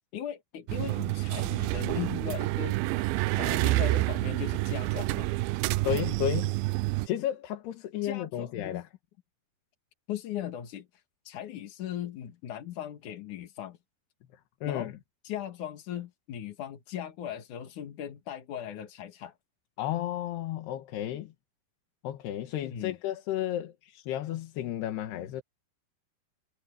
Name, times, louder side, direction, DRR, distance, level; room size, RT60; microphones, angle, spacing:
voice 1, 0.1-2.8 3.4-5.3 8.0-8.8 10.1-13.8 14.6-14.9 15.2-19.3 22.7-23.0, left 10 dB, 55° left, 2.8 m, -38 dB
sound 1, 0.7-7.1, right 19 dB, 85° right, 2.1 m, -28 dB
voice 2, 5.8-6.5 7.1-8.9 14.6-14.9 19.8-21.3 22.0-25.4, left 12 dB, 75° left, 3.5 m, -32 dB
omnidirectional pair, 4.8 m